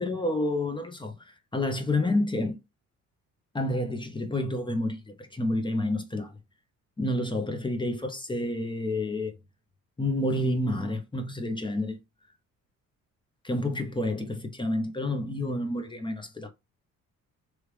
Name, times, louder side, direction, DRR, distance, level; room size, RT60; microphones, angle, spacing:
voice 1, 0.0-2.5 3.5-6.3 7.0-9.4 10.0-12.0 13.4-16.5, left 1 dB, 15° left, 0.8 m, -29 dB
3.2 x 2.5 x 3.2 m
cardioid pair, 85°, 32 cm